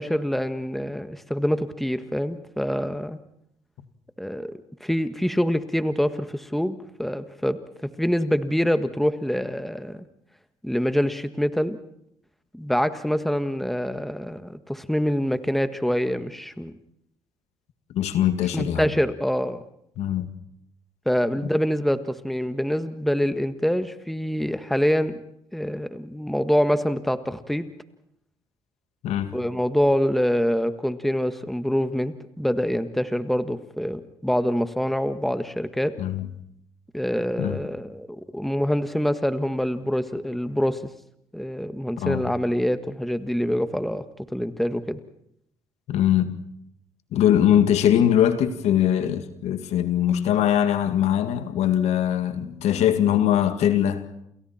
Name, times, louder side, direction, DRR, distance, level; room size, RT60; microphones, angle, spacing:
voice 1, 0.0-3.2 4.2-10.0 10.6-11.8 12.5-16.7 18.5-19.6 21.0-25.2 25.5-27.7 29.3-35.9 36.9-40.9 41.3-44.0 44.3-45.0, equal, ahead, 1.6 m, -25 dB
voice 2, 17.9-18.8 20.0-20.3 29.0-29.4 36.0-36.3 37.4-37.6 42.0-42.3 45.9-46.4 47.1-54.0, left 10 dB, 70° left, 1.9 m, -21 dB
28.5 x 28.5 x 4.4 m
supercardioid pair, 70°, 12 cm